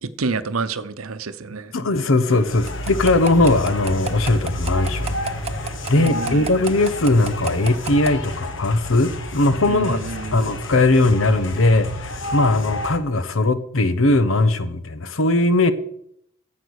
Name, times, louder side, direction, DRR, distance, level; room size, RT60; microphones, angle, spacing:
voice 1, 0.0-1.7 5.9-6.5 9.7-10.5, right 4 dB, 85° right, 0.8 m, -28 dB
voice 2, 1.7-5.1 5.6-10.0 10.3-15.7, left 2 dB, 75° left, 1.0 m, -19 dB
sound 1, 2.3-13.0, left 1 dB, 60° left, 1.2 m, -30 dB
sound 2, 2.7-8.1, right 6 dB, 30° right, 0.7 m, -31 dB
13.5 x 7.6 x 6.5 m
head